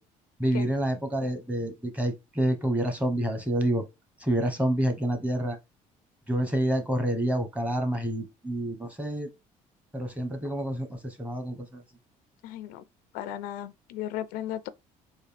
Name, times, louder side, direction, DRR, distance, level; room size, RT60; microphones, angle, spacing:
voice 1, 0.4-3.8 4.2-5.6 6.3-9.3 9.9-10.9 11.2-11.6, right 1 dB, 10° right, 1.0 m, -28 dB
voice 2, 12.4-12.8 13.1-14.7, left 12 dB, 85° left, 0.4 m, -35 dB
3.7 x 2.5 x 3.3 m
cardioid pair, 95°, 15 cm